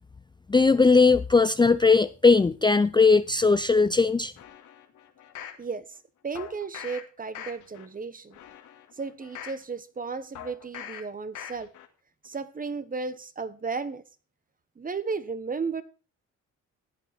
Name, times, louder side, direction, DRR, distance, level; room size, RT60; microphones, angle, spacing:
voice 1, 0.5-4.3, left 4 dB, 15° left, 0.5 m, -19 dB
sound 1, 4.4-5.6 6.3-7.0 7.3-7.8 8.3-9.6 10.3-11.0 11.3-11.8 12.2-12.3, left 9 dB, 80° left, 2.3 m, -42 dB
voice 2, 5.6-6.0 6.2-8.4 9.0-11.7 12.2-14.0 14.8-15.8, right 4 dB, 30° right, 1.3 m, -34 dB
14.0 x 9.3 x 4.4 m
cardioid pair, 90°, 30 cm